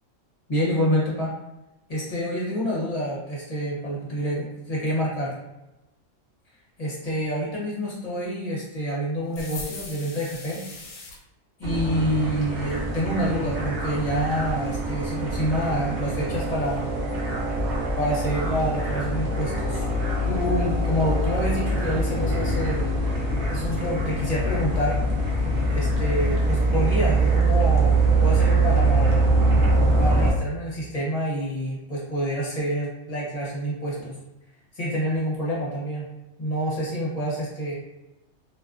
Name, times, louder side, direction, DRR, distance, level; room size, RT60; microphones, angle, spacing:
voice 1, 0.5-1.3 1.9-5.3 6.8-10.6 11.6-16.8 18.0-19.8 20.2-22.9 23.5-25.0 25.7-29.2 30.0-34.2 34.7-36.1 36.4-37.8, equal, 35° left, -6 dB, 0.8 m, -27 dB
sound 1, 9.3-11.2, left 3 dB, 70° left, 0.8 m, -39 dB
sound 2, 11.6-30.3, right 2 dB, 50° right, 0.6 m, -23 dB
2.5 x 2.3 x 2.4 m, 0.97 s
omnidirectional pair, 1.3 m